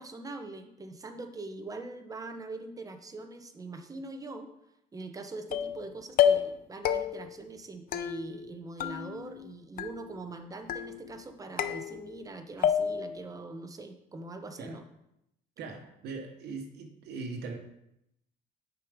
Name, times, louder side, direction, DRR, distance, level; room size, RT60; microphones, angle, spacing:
voice 1, 0.0-4.5 4.9-14.8, right 2 dB, 20° right, 6 dB, 0.9 m, -42 dB
sound 1, 5.5-5.8 6.2-6.6 6.8-7.4 7.9-8.5 8.8-9.5 9.8-10.3 10.7-11.2 11.6-12.3 12.6-13.2, left 9 dB, 60° left, 0.6 m, -29 dB
voice 2, 15.6-17.6, right 4 dB, 75° right, 3 dB, 1.2 m, -40 dB
6.7 x 4.8 x 5.1 m, 0.82 s
cardioid pair, 110°, 17 cm